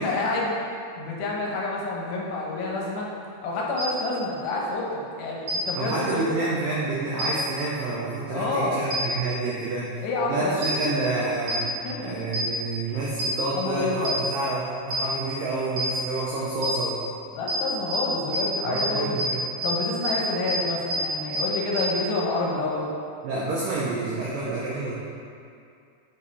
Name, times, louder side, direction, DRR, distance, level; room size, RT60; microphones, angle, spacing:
voice 1, 0.0-3.1 3.4-4.9 5.2-6.5 8.3-8.9 10.0-10.6 11.6-12.1 12.9-13.0 13.5-14.2 17.3-19.2 19.6-22.9, left 2 dB, 75° left, -3 dB, 3.0 m, -28 dB
sound 1, 3.8-3.9 5.5-5.6 7.2-7.3 8.9-9.0 10.6-10.7 11.5-11.6 12.3-12.4 13.2-13.3 14.0-14.1 14.9-15.0 15.8-15.9 16.6-16.7 17.5-17.6 17.9-18.0 18.3-18.4 18.8-18.9 19.2-19.3 19.6-19.7 20.0-20.1 20.5-20.6 20.9-21.0 21.3-21.4 21.8-21.9, right 1 dB, 50° right, 1.7 m, -27 dB
voice 2, 5.8-10.0 10.3-11.6 12.0-17.0 18.7-19.4 23.2-24.9, right 3 dB, 85° right, -6 dB, 1.9 m, -28 dB
8.1 x 5.5 x 4.1 m, 2.4 s
omnidirectional pair, 5.1 m